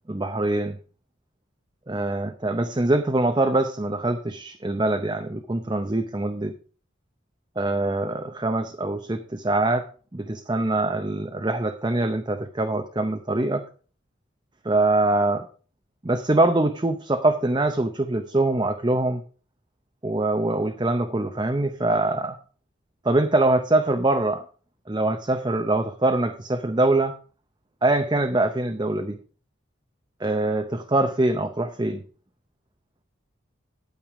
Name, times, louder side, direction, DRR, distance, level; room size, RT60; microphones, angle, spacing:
voice 1, 0.1-0.8 1.9-6.5 7.6-9.8 10.1-13.6 14.6-15.5 16.0-19.2 20.0-22.4 23.0-24.4 24.9-27.1 27.8-29.2 30.2-32.0, right 2 dB, 20° right, 6 dB, 0.6 m, -23 dB
9.0 x 8.9 x 4.8 m, 0.39 s
head